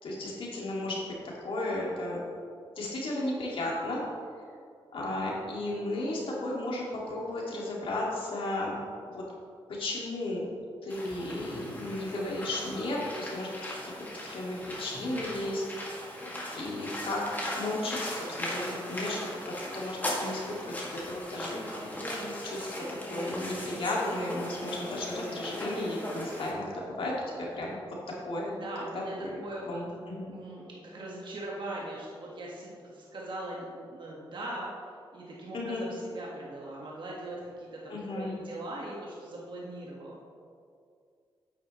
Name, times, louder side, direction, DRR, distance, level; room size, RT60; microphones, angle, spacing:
voice 1, 0.0-2.2 2.8-4.0 4.9-8.7 9.1-9.2 9.7-10.5 10.8-13.5 13.8-13.9 14.2-16.1 16.5-19.3 19.7-21.6 22.4-22.8 23.1-27.8 28.3-28.6 28.9-30.3 35.5-35.8 37.9-38.4, left 1 dB, 70° left, -4 dB, 2.3 m, -34 dB
sound 1, 10.9-26.5, left 1 dB, 20° left, 2.2 m, -38 dB
voice 2, 28.6-29.1 29.4-29.8 30.2-34.7 35.1-40.2, right 1 dB, 55° right, -4 dB, 1.7 m, -40 dB
9.3 x 8.7 x 3.2 m, 2.3 s
cardioid pair, 80°, 9 cm